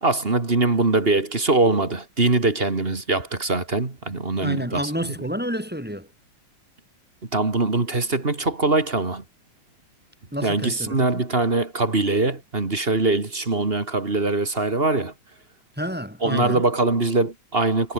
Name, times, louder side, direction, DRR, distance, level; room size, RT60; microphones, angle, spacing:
voice 1, 0.0-5.1 7.3-9.2 10.4-15.1 16.2-17.9, right 3 dB, 20° right, 2.3 m, -22 dB
voice 2, 4.4-6.1 10.3-11.2 15.8-16.6, equal, 5° right, 3.8 m, -29 dB
omnidirectional pair, 3.4 m